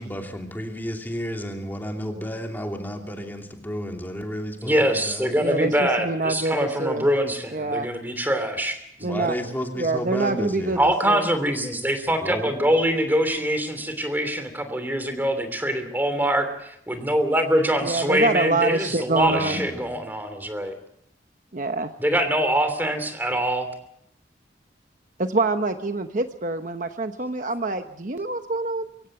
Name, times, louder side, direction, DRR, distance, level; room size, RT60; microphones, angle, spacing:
voice 1, 0.0-5.3 9.0-10.9 12.2-12.6 19.2-20.0, equal, 10° left, 2 dB, 2.9 m, -32 dB
voice 2, 4.6-8.8 10.8-20.7 22.0-23.7, equal, 10° right, 8 dB, 3.1 m, -24 dB
voice 3, 5.3-7.0 7.5-7.9 9.0-9.3 9.8-11.3 17.8-19.6 21.5-21.9 25.2-28.9, right 2 dB, 45° right, 7 dB, 1.0 m, -25 dB
24.0 x 16.5 x 7.8 m, 0.74 s
head